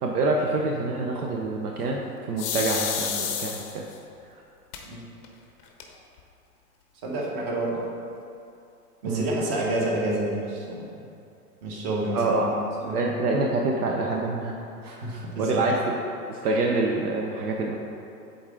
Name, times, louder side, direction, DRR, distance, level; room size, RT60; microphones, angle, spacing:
voice 1, 0.0-3.9 9.0-9.3 12.1-12.5 12.9-14.6 15.4-15.8 16.3-17.8, right 3 dB, 70° right, 0 dB, 0.8 m, -26 dB
sound 1, 2.4-3.9 4.7-4.8 5.2-5.3 5.6-6.2, left 7 dB, 25° left, 0.6 m, -30 dB
voice 2, 7.0-7.8 9.0-10.9 11.6-13.1 14.8-15.7, right 1 dB, 35° right, -3 dB, 1.4 m, -29 dB
7.9 x 3.9 x 3.7 m, 2.6 s
hypercardioid pair, 115°, 48 cm